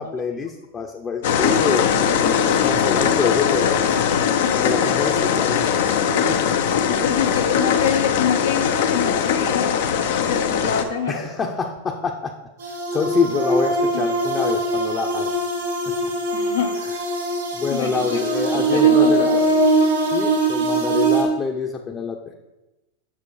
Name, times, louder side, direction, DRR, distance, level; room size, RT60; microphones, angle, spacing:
voice 1, 0.0-3.9 4.5-6.5 11.1-12.3 12.7-15.3 15.9-16.1 17.6-19.5 20.1-22.3, left 5 dB, 25° left, 1 dB, 0.7 m, -27 dB
sound 1, 1.2-10.8, left 7 dB, 65° left, 0.7 m, -20 dB
voice 2, 4.2-4.7 6.0-6.3 6.9-11.3 13.9-14.0 16.3-16.8 17.7-18.2 18.5-19.4, left 7 dB, 80° left, 3 dB, 1.1 m, -26 dB
sound 2, 12.6-21.2, right 2 dB, 80° right, 2.4 m, -21 dB
7.6 x 6.3 x 4.8 m, 1.0 s
hypercardioid pair, 100°, 0 cm